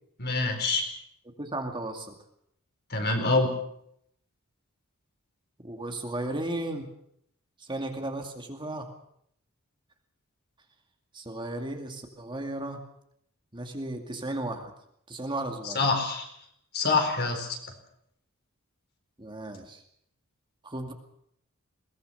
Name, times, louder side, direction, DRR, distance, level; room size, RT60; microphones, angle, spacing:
voice 1, 0.2-0.9 2.9-3.5 15.7-16.3 16.7-17.6, left 3 dB, 50° left, 4 dB, 4.5 m, -25 dB
voice 2, 1.4-2.1 5.6-6.9 7.6-8.9 11.1-12.8 13.5-14.7 15.1-15.9 19.2-19.8 20.6-20.9, right 1 dB, 20° right, 4 dB, 2.3 m, -35 dB
22.0 x 19.5 x 6.9 m, 0.73 s
head